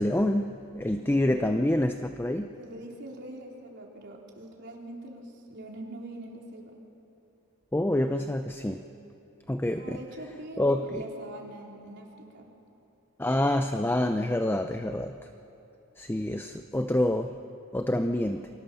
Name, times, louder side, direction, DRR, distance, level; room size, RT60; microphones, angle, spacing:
voice 1, 0.0-2.5 7.7-8.9 9.5-10.0 10.6-11.0 13.2-15.2 16.0-17.4 17.7-18.5, left 1 dB, 10° left, 7 dB, 0.6 m, -27 dB
voice 2, 1.0-1.5 2.6-6.7 9.7-12.1 12.3-12.5, right 1 dB, 55° right, -1 dB, 4.1 m, -43 dB
28.5 x 24.5 x 7.1 m, 2.9 s
head